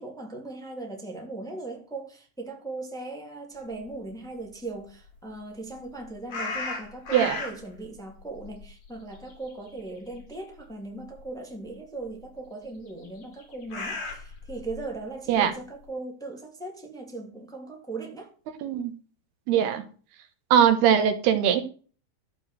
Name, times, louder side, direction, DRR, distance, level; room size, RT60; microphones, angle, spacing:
voice 1, 0.0-18.3, right 2 dB, ahead, 2.4 m, -38 dB
sound 1, 6.3-7.8 8.2-9.9 10.1-10.4 11.2-11.3 13.0-14.8, left 3 dB, 35° left, 3.5 m, -35 dB
voice 2, 18.6-18.9 19.5-19.8 20.5-21.6, right 9 dB, 80° right, 3.3 m, -21 dB
13.5 x 5.4 x 7.7 m
omnidirectional pair, 4.6 m